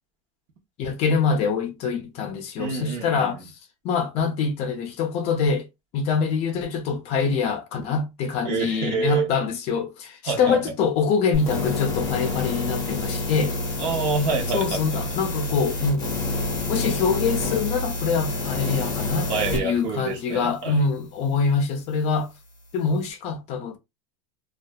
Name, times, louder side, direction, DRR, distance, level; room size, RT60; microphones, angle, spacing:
voice 1, 0.8-3.5 3.8-5.7 5.9-13.5 14.5-16.0 16.7-22.3 22.7-23.8, left 5 dB, 40° left, 0.5 m, -24 dB
voice 2, 2.6-3.4 8.4-9.3 10.3-10.6 13.8-15.0 19.3-20.8, right 5 dB, 50° right, 0.9 m, -27 dB
sound 1, 11.3-19.6, left 2 dB, 20° left, 0.8 m, -28 dB
2.6 x 2.3 x 2.2 m
supercardioid pair, 150°, 17 cm